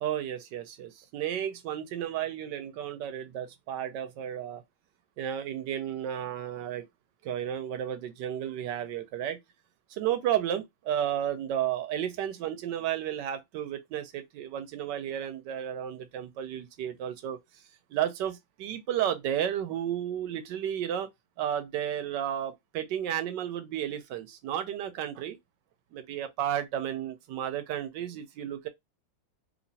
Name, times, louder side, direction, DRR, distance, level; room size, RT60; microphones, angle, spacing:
voice 1, 0.0-4.6 5.2-6.9 7.2-9.4 9.9-17.4 17.9-21.1 21.4-25.4 25.9-28.7, right 10 dB, 70° right, 1.2 m, -32 dB
3.0 x 2.8 x 2.7 m
omnidirectional pair, 2.2 m